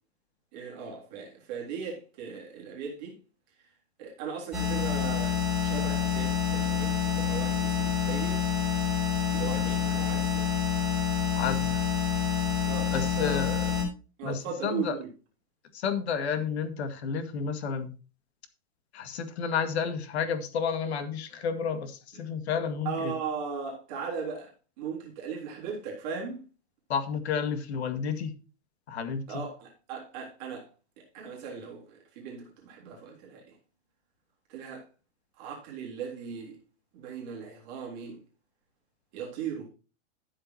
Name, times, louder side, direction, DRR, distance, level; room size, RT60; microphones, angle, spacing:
voice 1, 0.5-3.2 4.0-8.5 9.3-10.5 12.6-13.8 14.2-15.1 22.8-26.4 29.3-30.7 31.0-33.4 34.5-34.9 35.4-36.6 36.9-38.2 39.1-39.7, right 6 dB, 35° right, 3.6 m, -38 dB
sound 1, 4.5-13.8, left 8 dB, ahead, 5.7 m, -27 dB
voice 2, 11.3-11.8 12.9-13.6 14.2-15.0 15.7-17.9 18.9-23.1 26.9-28.3 28.9-29.4, left 6 dB, 60° left, 2.1 m, -31 dB
13.0 x 7.4 x 2.9 m
hypercardioid pair, 165°, 37 cm